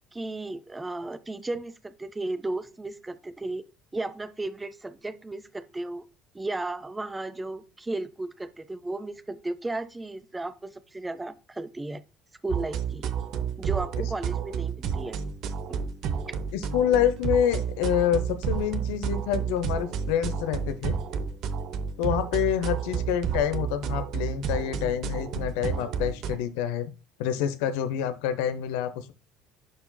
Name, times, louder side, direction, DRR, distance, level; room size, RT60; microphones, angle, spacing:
voice 1, 0.1-3.6 3.9-6.1 6.3-12.0 12.4-13.0 13.6-15.2 15.7-15.8 16.3-16.4, right 2 dB, 15° right, 0.6 m, -34 dB
sound 1, 12.5-26.4, right 7 dB, 55° right, 0.7 m, -31 dB
voice 2, 16.5-21.0 22.0-26.9 27.2-29.1, left 9 dB, 65° left, 0.6 m, -27 dB
11.0 x 4.5 x 2.2 m
figure-of-eight pair, 60°, 0 cm